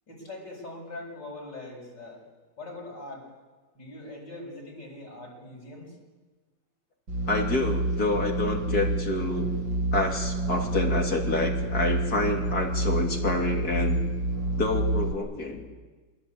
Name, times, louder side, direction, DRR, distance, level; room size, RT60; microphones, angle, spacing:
voice 1, 0.1-2.2 2.6-3.3 3.7-6.0, left 2 dB, 85° left, -1 dB, 8.0 m, -42 dB
sound 1, 7.1-15.1, right 2 dB, 90° right, 4.7 m, -28 dB
voice 2, 7.3-9.5 9.9-14.0 14.6-15.6, left 2 dB, 60° left, 2 dB, 3.2 m, -28 dB
27.0 x 22.5 x 8.7 m, 1.3 s
omnidirectional pair, 1.9 m